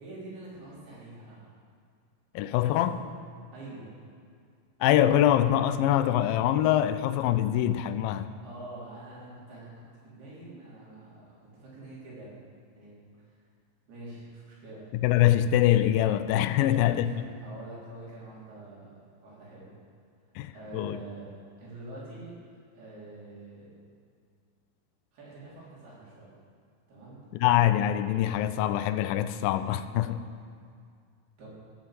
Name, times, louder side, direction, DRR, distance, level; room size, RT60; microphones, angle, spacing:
voice 1, 0.0-1.5 2.5-3.0 3.5-3.9 8.2-12.4 12.8-13.3 13.9-14.9 16.5-17.1 17.4-19.7 20.5-21.3 21.6-22.3 22.7-23.8 25.1-26.3 26.9-27.2 31.4-31.5, right 2 dB, 85° right, 5.9 m, -46 dB
voice 2, 2.3-3.0 4.8-8.3 15.0-17.2 20.4-21.0 27.3-30.2, left 12 dB, 80° left, 2.2 m, -24 dB
16.0 x 7.2 x 7.6 m
omnidirectional pair, 4.4 m